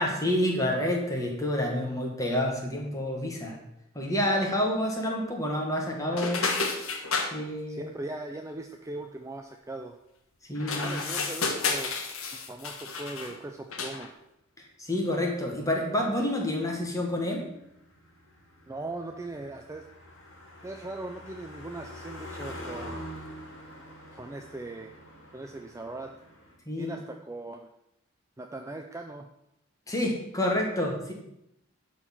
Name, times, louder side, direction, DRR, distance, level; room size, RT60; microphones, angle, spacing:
voice 1, 0.0-3.6 4.0-6.5 7.3-7.9 10.5-11.0 14.6-17.4 26.7-27.0 29.9-31.1, left 1 dB, 15° left, 0 dB, 1.7 m, -28 dB
sound 1, 6.1-7.3 10.6-13.4 13.7-14.1, left 4 dB, 75° left, 1.3 m, -31 dB
voice 2, 7.7-10.0 10.7-11.9 12.5-14.2 18.7-19.9 20.6-23.0 24.1-25.0 25.3-26.1 26.8-27.7 28.4-29.3, right 2 dB, 15° right, 4 dB, 0.4 m, -39 dB
Car passing by, 15.4-26.5, equal, 55° left, 2.6 m, -45 dB
11.0 x 4.5 x 6.0 m, 0.81 s
head